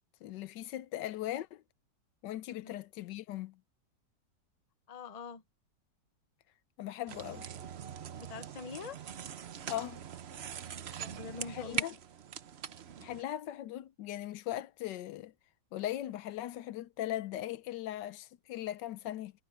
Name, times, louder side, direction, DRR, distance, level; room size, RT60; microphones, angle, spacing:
voice 1, 0.2-1.6 2.2-3.6 6.8-7.5 9.7-10.0 11.2-12.0 13.0-15.3 15.7-19.3, left 13 dB, 75° left, 1.3 m, -39 dB
voice 2, 4.9-5.4 8.2-9.0 11.0-11.8, left 5 dB, 45° left, 0.5 m, -44 dB
sound 1, 7.1-13.2, right 8 dB, 50° right, 0.8 m, -42 dB
omnidirectional pair, 1.9 m